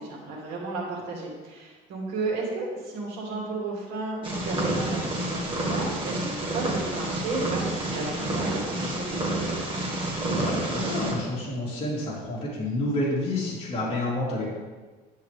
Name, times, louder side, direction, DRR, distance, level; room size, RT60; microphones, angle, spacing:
voice 1, 0.0-9.2 13.5-13.9, right 3 dB, 75° right, -2 dB, 2.7 m, -34 dB
Purr, 4.2-11.1, right 1 dB, 30° right, 1.8 m, -29 dB
voice 2, 10.4-14.5, left 1 dB, 35° left, -7 dB, 3.5 m, -29 dB
10.0 x 9.2 x 3.4 m, 1.4 s
cardioid pair, 155°, 17 cm